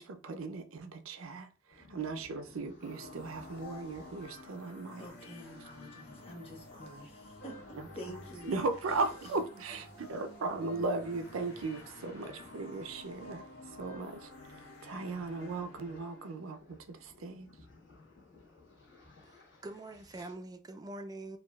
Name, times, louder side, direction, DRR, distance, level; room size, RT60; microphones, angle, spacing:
voice 1, 0.0-5.1 7.8-7.9 8.5-17.5, right 3 dB, 90° right, 0.5 m, -37 dB
sound 1, 1.7-20.3, left 3 dB, 65° left, 1.3 m, -58 dB
sound 2, 2.8-16.3, left 1 dB, 90° left, 1.1 m, -51 dB
voice 2, 5.0-8.6 8.9-9.4, left 1 dB, 30° left, 1.1 m, -48 dB
voice 3, 19.2-21.4, right 2 dB, 20° right, 0.3 m, -44 dB
4.4 x 2.3 x 2.3 m
head